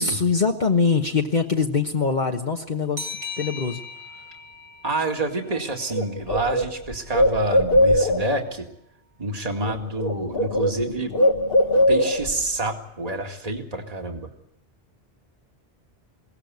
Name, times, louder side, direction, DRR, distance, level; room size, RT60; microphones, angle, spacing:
voice 1, 0.0-3.1 3.4-3.8, left 4 dB, 45° left, 2 dB, 1.3 m, -23 dB
sound 1, 3.0-6.3, left 3 dB, 70° right, 2.7 m, -38 dB
voice 2, 4.8-8.7 9.2-11.1 11.9-14.3, right 2 dB, 35° right, 3 dB, 2.2 m, -28 dB
Bird, 5.5-5.6 5.9-8.4 9.5-9.7 10.0-12.4, left 1 dB, 65° left, 1.7 m, -21 dB
22.5 x 18.0 x 9.5 m, 0.75 s
omnidirectional pair, 1.1 m